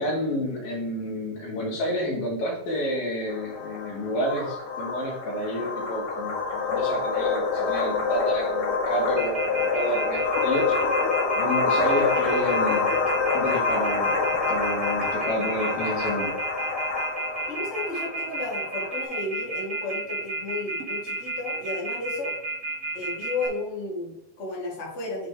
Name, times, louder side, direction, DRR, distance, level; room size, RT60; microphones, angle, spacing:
voice 1, 0.0-10.8 11.4-13.0 13.3-16.4, equal, 75° left, -3 dB, 3.7 m, -30 dB
sound 1, 3.3-19.0, left 4 dB, 90° left, 3.4 m, -27 dB
Telephone, 9.2-23.5, right 3 dB, 65° right, 0.7 m, -31 dB
voice 2, 17.5-22.3 22.9-25.3, left 2 dB, 35° left, -3 dB, 1.1 m, -33 dB
9.4 x 4.0 x 3.7 m, 0.83 s
omnidirectional pair, 4.4 m